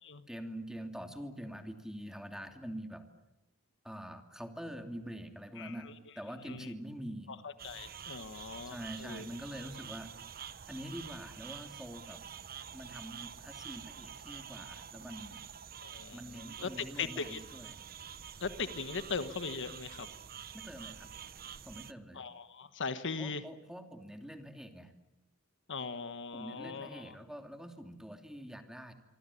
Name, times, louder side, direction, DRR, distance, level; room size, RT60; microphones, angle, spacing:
voice 1, 0.3-3.0 3.8-5.9 6.1-7.3 8.7-10.1 10.7-12.2 12.7-15.4 16.1-17.8 20.5-21.1 21.6-22.2 23.2-24.9 26.3-28.9, equal, ahead, 6 dB, 2.8 m, -45 dB
voice 2, 5.6-5.9 6.5-6.7 7.4-9.3 15.8-17.4 18.4-20.1 22.1-23.4 25.7-27.1, left 5 dB, 55° left, 11 dB, 1.3 m, -39 dB
sound 1, 7.6-21.9, right 8 dB, 40° right, 1.0 m, -48 dB
25.5 x 25.0 x 8.5 m, 0.96 s
head